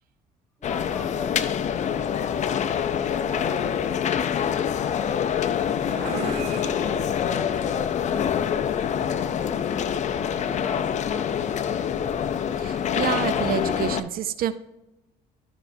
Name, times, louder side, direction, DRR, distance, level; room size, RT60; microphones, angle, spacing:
sound 1, 0.6-14.0, left 8 dB, 45° left, 0.5 m, -26 dB
voice 1, 0.6-0.7, equal, 10° left, 6 dB, 0.9 m, -44 dB
sound 2, 5.0-8.6, right 2 dB, 40° right, 2.8 m, -38 dB
voice 2, 12.6-14.5, right 10 dB, 60° right, 14 dB, 0.4 m, -28 dB
12.0 x 5.8 x 2.7 m, 0.95 s
cardioid pair, 110°, 17 cm